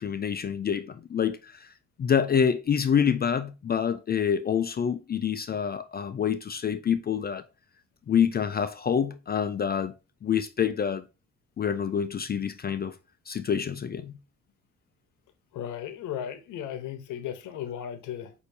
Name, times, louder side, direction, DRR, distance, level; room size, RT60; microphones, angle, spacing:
voice 1, 0.0-1.7 2.0-7.4 8.1-9.9 10.2-11.0 11.6-12.9 13.3-14.1, left 7 dB, 35° left, 0.4 m, -27 dB
voice 2, 15.5-18.3, left 10 dB, 85° left, 0.8 m, -36 dB
6.5 x 2.7 x 2.6 m
cardioid pair, 90°, 30 cm